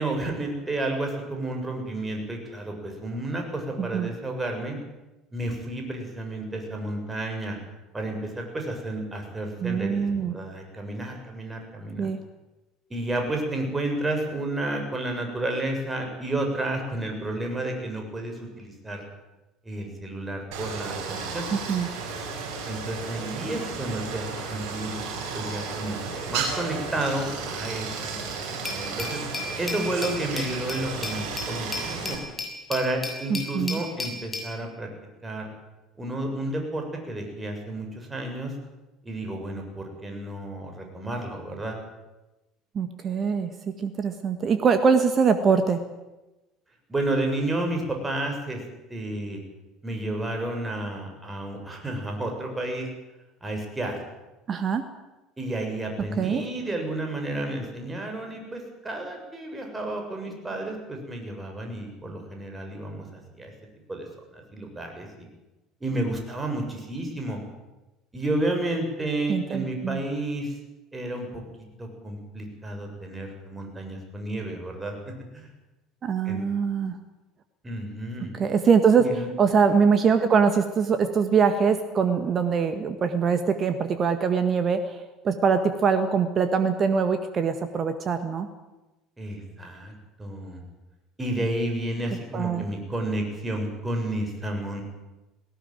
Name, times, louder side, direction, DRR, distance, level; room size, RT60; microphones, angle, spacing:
voice 1, 0.0-4.8 5.3-7.6 7.9-12.1 12.9-19.0 19.6-21.5 22.7-25.0 25.3-26.0 26.3-29.2 29.6-32.2 32.7-34.9 35.2-35.5 36.0-38.5 39.0-41.8 46.9-48.6 48.9-49.4 49.8-52.9 53.4-54.0 55.4-63.5 63.9-64.1 64.3-65.1 65.8-67.4 68.1-70.6 70.9-71.4 71.8-75.5 76.3-76.4 77.6-78.4 79.0-79.3 89.2-89.9 90.2-90.6 91.2-94.8, right 1 dB, 15° right, 2 dB, 7.4 m, -31 dB
voice 2, 3.8-4.1 9.6-10.3 12.0-12.2 21.5-21.9 33.3-33.8 42.7-45.8 54.5-54.8 56.2-56.4 69.3-70.0 76.0-77.0 78.3-79.1 79.4-88.5 92.3-92.6, right 6 dB, 35° right, 9 dB, 1.6 m, -23 dB
Stream, 20.5-32.2, right 5 dB, 60° right, 6.0 m, -33 dB
Glass, 28.6-34.5, left 3 dB, 20° left, 6.9 m, -35 dB
18.5 x 18.0 x 9.3 m, 1.0 s
figure-of-eight pair, 65°, 0 cm